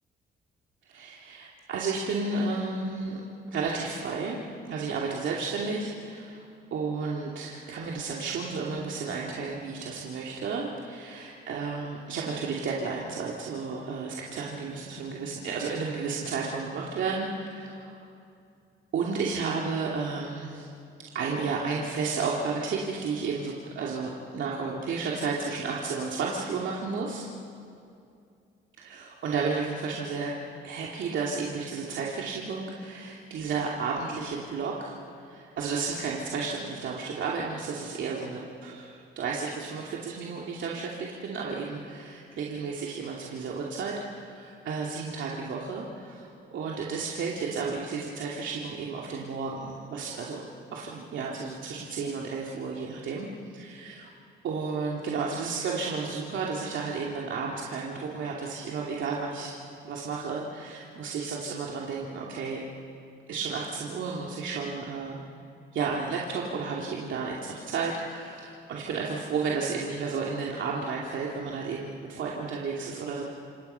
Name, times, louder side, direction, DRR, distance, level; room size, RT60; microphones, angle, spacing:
voice 1, 0.9-3.2 3.5-4.4 4.7-6.4 6.7-18.1 18.9-20.7 21.1-27.3 28.8-30.3 30.6-50.4 50.7-53.3 53.5-54.1 54.4-59.5 59.8-62.6 63.3-65.2 65.7-73.2, right 4 dB, 70° right, -3 dB, 2.6 m, -32 dB
27.5 x 27.0 x 5.7 m, 2.5 s
cardioid pair, 90°, 20 cm